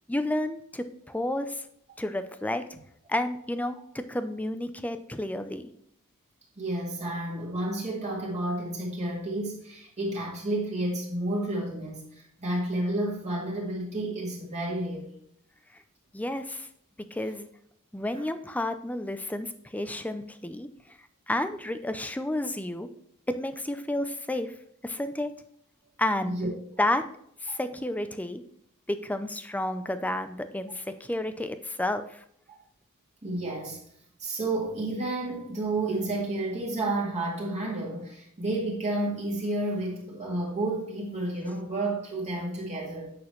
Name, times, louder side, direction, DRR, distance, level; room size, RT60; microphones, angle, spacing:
voice 1, 0.1-1.7 2.0-2.6 3.1-5.7 15.7-15.8 16.1-16.7 17.1-17.5 17.9-20.7 21.3-22.9 23.3-24.5 24.8-25.3 26.0-26.3 26.8-27.0 27.4-28.4 28.9-32.2, left 1 dB, 5° left, 0.5 m, -31 dB
voice 2, 6.6-15.1 26.2-26.5 27.5-27.6 32.5-32.6 33.2-33.8 34.2-43.1, right 2 dB, 30° right, 2.0 m, -31 dB
8.6 x 6.2 x 3.1 m
head